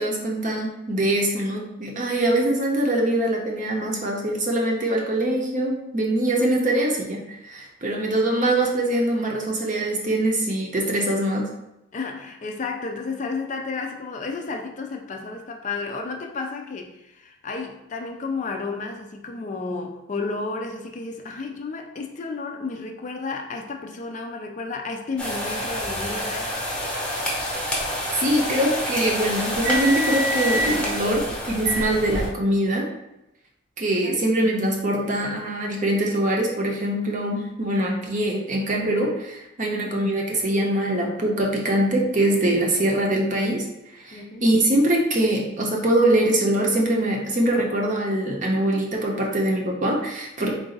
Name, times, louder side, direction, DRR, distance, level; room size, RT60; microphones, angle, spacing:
voice 1, 0.0-11.5 28.2-32.9 33.8-43.7 44.0-50.5, right 1 dB, 40° right, 0 dB, 0.7 m, -23 dB
voice 2, 11.9-26.5 34.0-34.3 39.6-39.9 44.1-44.5 50.4-50.5, left 4 dB, 35° left, 3 dB, 0.4 m, -32 dB
sound 1, 25.2-32.3, equal, 5° left, 0.8 m, -27 dB
3.9 x 2.5 x 3.8 m, 0.89 s
head